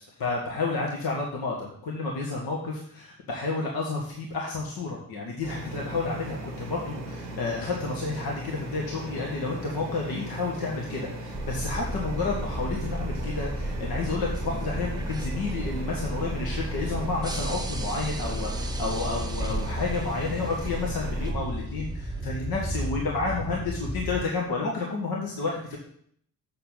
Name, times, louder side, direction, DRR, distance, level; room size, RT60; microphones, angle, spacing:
voice 1, 0.2-25.8, left 3 dB, 45° left, -1 dB, 1.7 m, -31 dB
sound 1, 5.4-21.3, right 1 dB, 90° right, 1.1 m, -38 dB
sound 2, 11.3-24.3, right 1 dB, 10° right, 0.9 m, -33 dB
7.3 x 6.6 x 4.1 m, 0.64 s
figure-of-eight pair, 50°, 48 cm